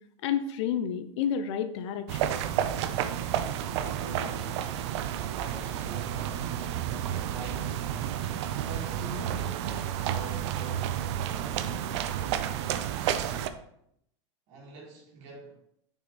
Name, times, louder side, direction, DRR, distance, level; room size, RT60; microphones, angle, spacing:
voice 1, 0.2-2.4, left 8 dB, 70° left, 0.9 m, -30 dB
sound 1, 2.1-13.5, right 10 dB, 65° right, 0.7 m, -31 dB
voice 2, 3.5-4.6 5.3-8.2 8.5-11.9 14.5-15.6, right 2 dB, 45° right, 2.9 m, -44 dB
6.4 x 6.4 x 4.2 m
supercardioid pair, 145°, 15 cm